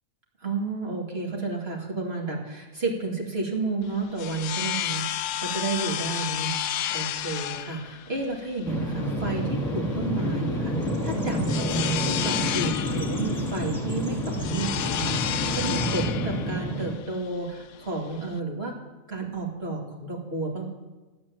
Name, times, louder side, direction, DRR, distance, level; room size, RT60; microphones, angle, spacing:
voice 1, 0.4-6.6 6.9-18.7 19.1-20.6, right 3 dB, 45° right, -1 dB, 2.3 m, -31 dB
sound 1, 3.8-18.4, left 11 dB, 85° left, 1.0 m, -32 dB
Bird vocalization bird call bird song, 8.6-17.0, equal, ahead, 2.2 m, -29 dB
12.5 x 8.4 x 7.4 m, 1.2 s
omnidirectional pair, 1.4 m